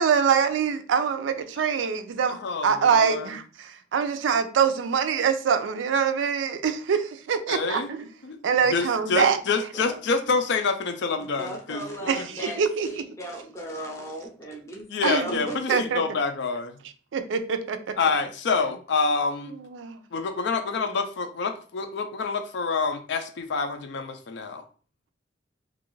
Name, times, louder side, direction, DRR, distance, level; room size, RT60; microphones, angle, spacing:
voice 1, 0.0-2.4 2.6-8.1 8.4-9.4 12.1-13.0 15.0-15.4 15.7-16.0 17.1-17.8 19.6-20.0, right 6 dB, 85° right, 0.4 m, -24 dB
voice 2, 2.3-3.3 7.5-7.9 8.2-8.4 8.7-12.6 14.9-16.8 18.0-19.5 20.1-24.6, left 4 dB, 70° left, 0.4 m, -27 dB
voice 3, 11.4-15.8, right 1 dB, 15° left, 0.6 m, -36 dB
2.5 x 2.3 x 3.0 m
head